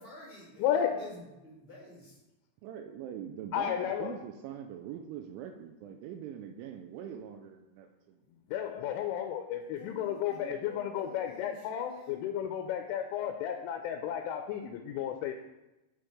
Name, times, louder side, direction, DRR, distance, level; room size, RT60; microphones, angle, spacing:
voice 1, 0.0-2.2 9.8-12.2, left 2 dB, 70° left, -9 dB, 0.6 m, -49 dB
voice 2, 0.6-1.1 3.5-4.2 8.5-15.3, left 9 dB, 90° left, 6 dB, 3.1 m, -33 dB
voice 3, 2.6-8.2, right 9 dB, 85° right, 5 dB, 2.9 m, -43 dB
7.9 x 4.4 x 4.8 m, 0.99 s
omnidirectional pair, 5.5 m